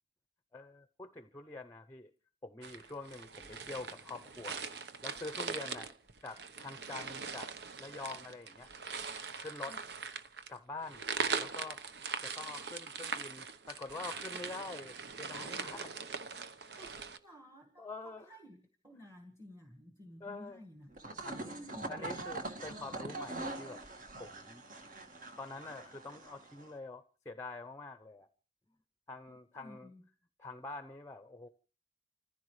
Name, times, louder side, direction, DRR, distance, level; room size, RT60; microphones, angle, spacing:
voice 1, 0.5-2.1 2.4-4.7 5.0-5.9 6.2-7.5 7.8-8.7 9.4-9.8 10.5-11.1 11.4-11.8 12.2-15.9 16.6-16.9 17.8-18.3 20.2-20.6 21.2-21.6 21.9-23.8 24.2-24.6 25.4-28.3 29.1-29.9 30.4-31.5, left 3 dB, 15° left, 0.7 m, -46 dB
sound 1, 2.6-17.2, right 5 dB, 65° right, 1.0 m, -41 dB
voice 2, 16.8-20.9 21.4-21.9 29.3-30.0, equal, 20° right, 1.7 m, -54 dB
sound 2, 20.9-26.7, right 2 dB, 50° right, 1.8 m, -43 dB
29.5 x 15.0 x 3.2 m
head